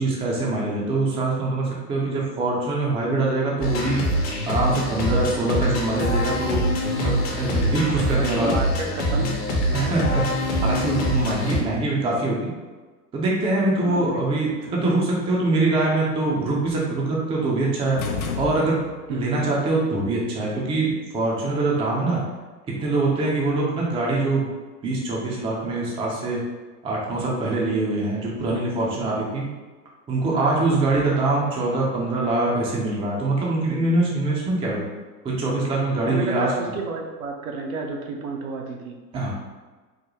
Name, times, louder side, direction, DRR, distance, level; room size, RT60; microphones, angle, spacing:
voice 1, 0.0-4.1 4.5-6.6 7.0-8.6 9.2-9.4 9.7-10.2 10.6-12.5 13.1-18.0 18.4-18.8 19.1-22.2 22.7-24.5 24.8-26.5 26.8-29.5 30.1-34.8 35.2-36.5 39.1-39.3, right 2 dB, 10° right, -4 dB, 0.5 m, -23 dB
sound 1, 3.6-11.6, equal, 40° left, 0.9 m, -24 dB
voice 2, 8.2-10.1 13.8-14.2 19.1-19.3 23.5-23.6 30.4-30.8 36.1-39.0, right 3 dB, 60° right, 1 dB, 0.8 m, -31 dB
sound 2, 18.0-19.2, left 3 dB, 70° left, 0.7 m, -30 dB
3.9 x 2.1 x 3.1 m, 1.3 s
hypercardioid pair, 100°, 47 cm